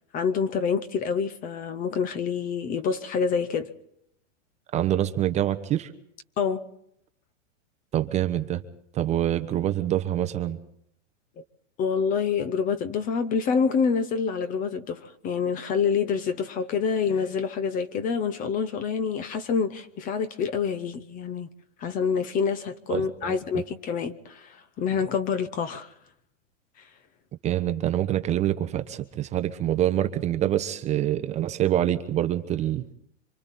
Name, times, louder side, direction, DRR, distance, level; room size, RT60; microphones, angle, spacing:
voice 1, 0.1-3.7 6.4-6.7 11.8-21.5 21.8-25.9, left 6 dB, 20° left, 0.8 m, -27 dB
voice 2, 4.7-5.9 7.9-8.6 8.9-10.6 22.9-23.3 27.4-32.8, right 12 dB, 20° right, 0.8 m, -25 dB
26.0 x 24.0 x 4.2 m
supercardioid pair, 150°, 38 cm